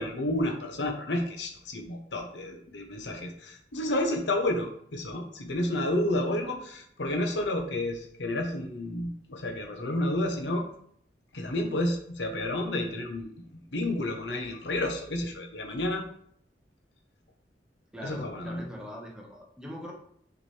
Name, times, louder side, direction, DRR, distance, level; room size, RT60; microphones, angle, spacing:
voice 1, 0.0-10.6 11.3-16.0 18.0-18.6, left 1 dB, 85° left, 3 dB, 1.1 m, -31 dB
voice 2, 17.9-19.9, equal, 5° right, -2 dB, 1.3 m, -41 dB
6.4 x 5.0 x 3.3 m, 0.66 s
head